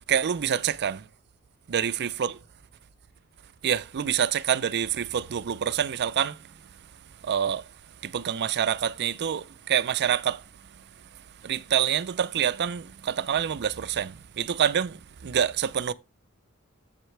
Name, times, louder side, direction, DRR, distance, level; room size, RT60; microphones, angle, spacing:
voice 1, 0.1-1.0 1.7-2.4 3.6-6.4 7.2-7.6 8.0-10.4 11.4-15.9, right 8 dB, 50° right, 0.4 m, -26 dB
7.7 x 7.3 x 3.3 m
head